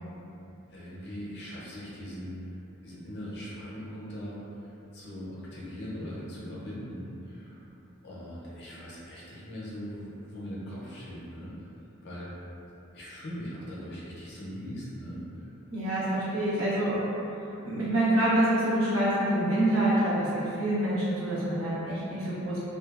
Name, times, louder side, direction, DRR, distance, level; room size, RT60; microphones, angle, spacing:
voice 1, 0.7-2.4 2.8-7.7 8.0-11.7 12.0-12.3 12.9-15.5, equal, 55° left, -7 dB, 0.6 m, -40 dB
voice 2, 15.7-17.0 17.6-22.6, right 1 dB, 85° right, -10 dB, 0.9 m, -26 dB
2.6 x 2.3 x 2.3 m, 2.9 s
head